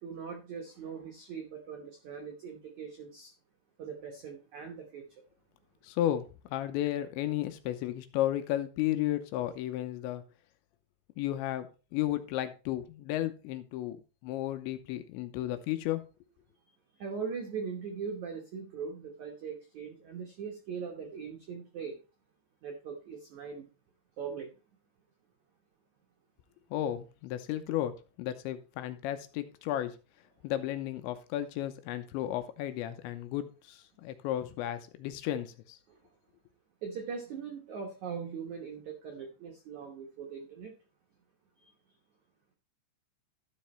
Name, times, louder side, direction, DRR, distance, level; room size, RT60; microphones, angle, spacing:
voice 1, 0.0-3.3 3.8-5.0 17.0-22.0 22.6-23.7 24.2-24.5 35.9-36.0 36.8-40.7 41.6-41.7, right 6 dB, 85° right, 3 dB, 1.6 m, -40 dB
voice 2, 5.8-10.2 11.2-11.7 11.9-14.0 14.2-16.0 26.7-30.0 30.4-35.8, left 13 dB, 80° left, 10 dB, 3.0 m, -33 dB
12.5 x 5.3 x 4.3 m, 0.32 s
omnidirectional pair, 5.4 m